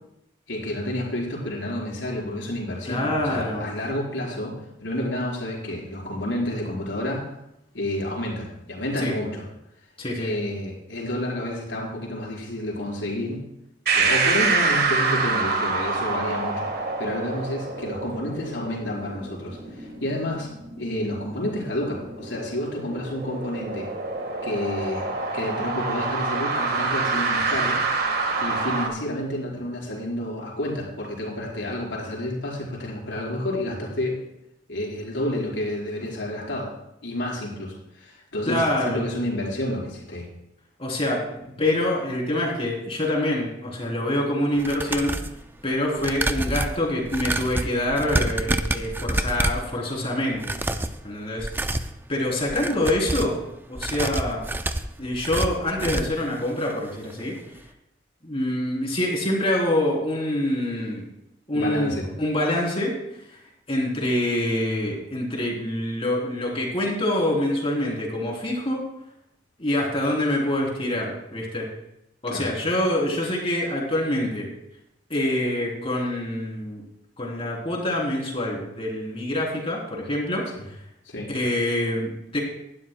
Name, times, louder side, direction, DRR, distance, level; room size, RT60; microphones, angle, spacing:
voice 1, 0.5-4.5 4.8-7.3 7.7-9.4 10.2-13.4 13.9-16.7 17.0-20.5 20.8-23.9 24.4-27.8 28.4-34.2 34.7-36.7 37.0-40.3 61.5-62.1 72.3-72.5 81.0-81.3, left 1 dB, 75° left, -3 dB, 4.6 m, -30 dB
voice 2, 2.8-3.6 9.0-9.1 10.0-10.3 38.5-39.0 40.8-45.2 45.6-50.5 51.0-51.8 52.1-53.4 53.7-54.4 55.0-57.3 58.2-61.1 61.5-62.9 63.3-63.4 63.7-68.8 69.6-71.7 72.2-74.5 75.1-76.8 77.2-80.7 81.3-82.4, left 1 dB, 30° left, -2 dB, 3.4 m, -25 dB
sound 1, 13.9-28.9, right 4 dB, 55° right, 1.6 m, -27 dB
sound 2, 44.5-45.4 46.0-49.7 50.3-51.0 51.4-51.9 52.4-53.4 53.8-56.2 56.6-56.7 57.1-57.2, right 1 dB, 10° right, 0.5 m, -27 dB
18.5 x 12.0 x 2.2 m, 0.82 s
head